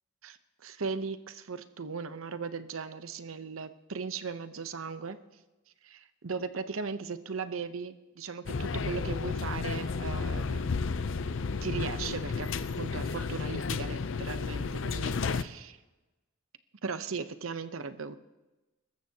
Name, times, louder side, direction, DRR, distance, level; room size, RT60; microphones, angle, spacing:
voice 1, 0.6-5.2 5.8-10.7 11.6-12.5 12.8-15.8 16.8-18.2, right 5 dB, 90° right, 11 dB, 0.8 m, -37 dB
sound 1, 8.5-15.4, left 4 dB, 65° left, 0.5 m, -32 dB
24.0 x 13.5 x 2.9 m, 1.1 s
head